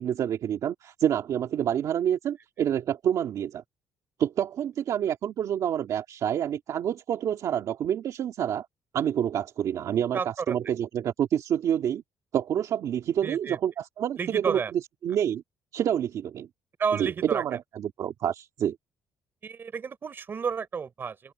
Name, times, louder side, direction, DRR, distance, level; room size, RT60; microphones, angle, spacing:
voice 1, 0.0-3.6 4.2-8.7 8.9-10.2 10.5-12.0 12.3-14.6 15.0-15.4 15.7-16.5 17.0-18.8, right 9 dB, 50° right, 2.1 m, -28 dB
voice 2, 10.1-10.6 13.2-13.6 14.2-14.7 16.8-17.6 19.4-21.3, right 6 dB, 30° right, 3.8 m, -31 dB
open air
cardioid pair, 170°, 7 cm